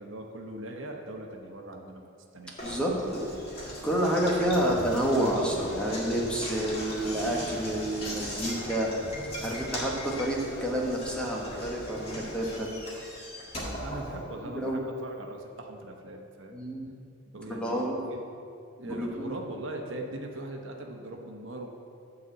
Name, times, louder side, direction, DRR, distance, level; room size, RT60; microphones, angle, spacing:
voice 1, 0.0-2.0 2.3-2.9 3.4-3.7 13.5-16.6 17.3-18.2 18.8-21.7, right 1 dB, 65° right, 2 dB, 0.9 m, -40 dB
Knock, 2.6-14.7, equal, 30° left, 1.8 m, -39 dB
voice 2, 2.6-3.2 3.8-9.1 9.4-12.7 14.5-14.8 16.5-16.9 17.5-18.0 18.8-19.3, right 1 dB, 5° left, -3 dB, 1.1 m, -29 dB
10.5 x 4.1 x 7.8 m, 2.5 s
head